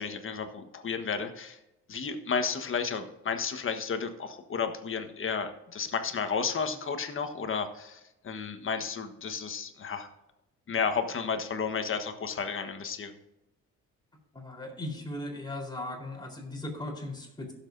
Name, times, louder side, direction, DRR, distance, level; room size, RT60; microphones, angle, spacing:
voice 1, 0.0-1.6 1.9-10.1 10.7-13.1, left 5 dB, 45° left, 7 dB, 1.3 m, -32 dB
voice 2, 14.3-17.5, left 1 dB, 15° left, 0 dB, 3.9 m, -38 dB
16.0 x 7.4 x 2.6 m, 0.93 s
cardioid pair, 90°, 30 cm